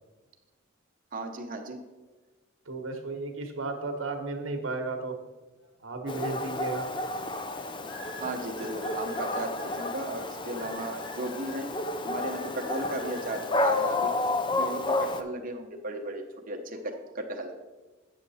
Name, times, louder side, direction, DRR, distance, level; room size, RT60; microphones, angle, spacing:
voice 1, 1.1-1.8 8.2-11.7 12.0-14.1 14.6-17.5, right 2 dB, 40° right, 3 dB, 0.9 m, -35 dB
voice 2, 2.7-5.1 5.8-6.9, right 3 dB, 65° right, 5 dB, 1.1 m, -34 dB
Dog, 6.1-15.2, left 2 dB, 25° left, 0.4 m, -31 dB
sound 1, 7.9-9.9 10.5-11.6 12.3-13.4, left 1 dB, 85° left, 2.2 m, -46 dB
8.7 x 6.5 x 4.1 m, 1.2 s
head